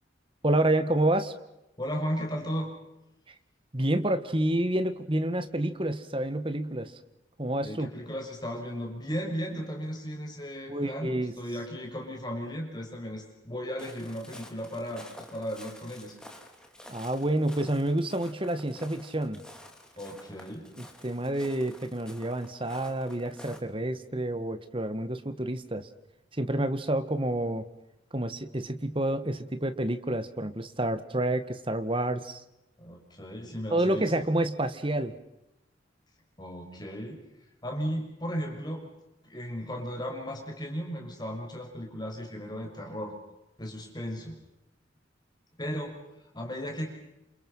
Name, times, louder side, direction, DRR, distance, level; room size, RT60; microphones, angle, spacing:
voice 1, 0.4-1.3 3.7-6.9 7.4-7.9 10.7-11.3 16.9-19.4 20.8-25.9 26.4-27.7 28.1-32.4 33.7-35.1, right 1 dB, 30° right, 10 dB, 2.0 m, -28 dB
voice 2, 1.8-2.7 7.6-16.2 20.0-20.6 32.8-34.1 36.4-37.2 37.6-38.9 39.2-43.1 43.6-44.4 45.6-45.9 46.3-46.9, equal, 20° left, 2 dB, 6.4 m, -35 dB
Walk footsteps, 13.8-23.6, left 1 dB, 5° left, 3.2 m, -50 dB
29.0 x 28.0 x 5.8 m, 0.90 s
head